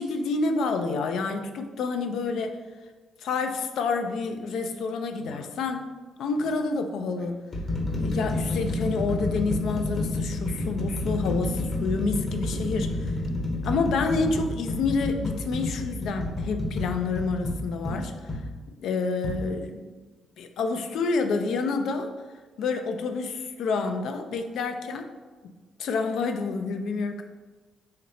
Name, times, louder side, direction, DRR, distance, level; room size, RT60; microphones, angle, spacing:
voice 1, 0.0-2.6 3.2-5.8 6.2-7.4 8.0-13.1 13.6-18.1 18.8-19.9 20.4-22.1 22.6-25.1 25.4-25.5 25.8-27.2, left 4 dB, 75° left, 6 dB, 0.5 m, -28 dB
sound 1, 5.2-5.5 6.4-6.5 7.2-18.5 19.2-19.4, left 2 dB, 40° left, 0.9 m, -30 dB
4.1 x 3.2 x 4.1 m, 1.3 s
cardioid pair, 90°, 0 cm